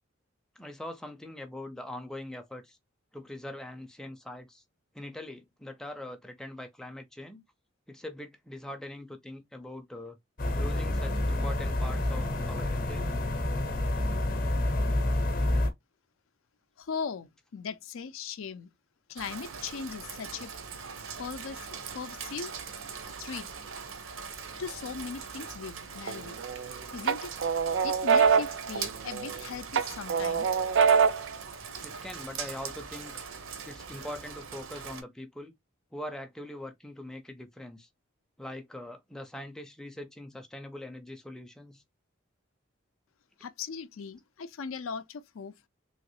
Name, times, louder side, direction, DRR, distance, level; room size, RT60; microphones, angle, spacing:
voice 1, 0.6-2.8 3.1-4.6 4.9-7.4 7.9-10.2 10.5-13.0 31.8-33.2 33.6-35.5 35.9-37.9 38.4-41.8, left 1 dB, 5° left, 0.4 m, -42 dB
sound 1, 10.4-15.7, left 1 dB, 45° left, 0.7 m, -28 dB
voice 2, 16.8-18.7 19.1-20.5 21.2-21.7 21.9-22.5 23.2-23.5 24.6-26.4 26.9-27.3 27.8-30.5 43.4-45.5, left 6 dB, 85° left, 0.5 m, -39 dB
Rain, 19.2-35.0, right 6 dB, 85° right, 0.8 m, -41 dB
sound 2, 26.1-26.7 27.1-29.4 29.7-31.4, right 6 dB, 65° right, 0.4 m, -24 dB
3.1 x 2.8 x 3.0 m
head